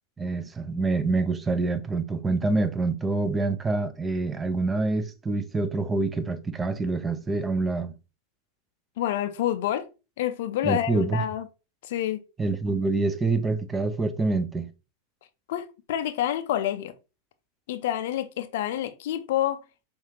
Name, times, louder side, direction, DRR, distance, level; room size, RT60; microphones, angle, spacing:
voice 1, 0.2-7.9 10.6-11.2 12.4-14.7, right 3 dB, 15° right, 0.5 m, -26 dB
voice 2, 9.0-9.9 10.2-11.5 11.8-12.2 15.5-16.9 17.7-19.6, left 12 dB, 55° left, 0.4 m, -28 dB
5.5 x 2.4 x 2.8 m
figure-of-eight pair, 90°, 0 cm